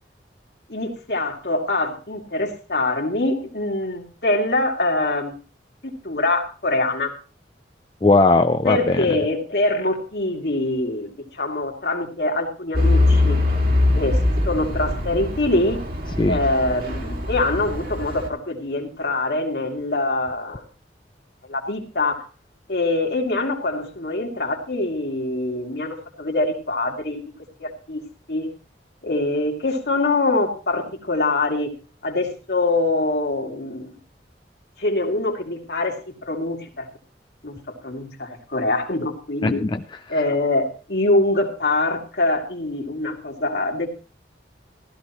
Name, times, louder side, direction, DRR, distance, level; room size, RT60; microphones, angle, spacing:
voice 1, 0.7-5.4 5.8-7.1 8.6-13.4 13.9-14.2 14.4-15.8 16.3-20.6 21.5-22.2 22.7-27.2 27.6-28.0 28.3-28.5 29.0-31.7 32.0-33.9 34.8-36.9 37.4-39.6 40.1-43.9, left 2 dB, 65° left, 1 dB, 2.6 m, -24 dB
voice 2, 8.0-9.0 16.2-16.4 39.4-39.8 40.1-40.2, left 2 dB, 25° left, 7 dB, 0.5 m, -18 dB
Truck / Idling, 12.7-18.3, left 2 dB, 55° right, 2.5 m, -22 dB
15.5 x 13.5 x 3.0 m, 0.35 s
head